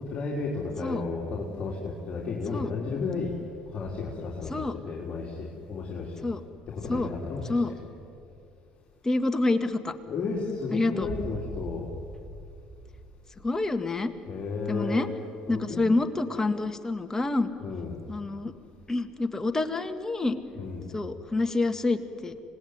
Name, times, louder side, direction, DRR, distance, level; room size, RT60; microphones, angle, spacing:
voice 1, 0.0-3.3 3.7-6.2 6.7-7.8 10.1-11.9 14.3-15.0 15.5-15.8 17.6-18.0 20.5-20.9, left 4 dB, 45° left, -3 dB, 3.9 m, -33 dB
voice 2, 9.0-9.9 10.7-11.1 13.4-14.1 14.7-15.1 15.5-17.5 18.1-18.5 18.9-20.4 20.9-22.4, left 2 dB, 20° left, 8 dB, 1.9 m, -27 dB
sound 1, 11.0-13.9, right 1 dB, 5° right, 4.8 m, -41 dB
26.0 x 19.0 x 9.6 m, 2.5 s
supercardioid pair, 80°, 3 cm